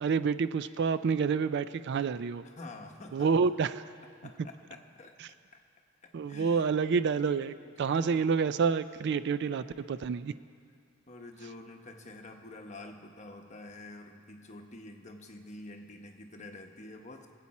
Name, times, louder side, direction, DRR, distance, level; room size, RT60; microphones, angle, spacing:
voice 1, 0.0-2.4 3.1-3.8 6.1-10.3, right 5 dB, 55° right, 14 dB, 0.3 m, -28 dB
voice 2, 2.4-3.5 4.2-5.1 6.0-6.7 7.6-8.3 11.1-17.3, left 2 dB, 35° left, 3 dB, 1.0 m, -48 dB
24.0 x 8.4 x 4.2 m, 2.3 s
head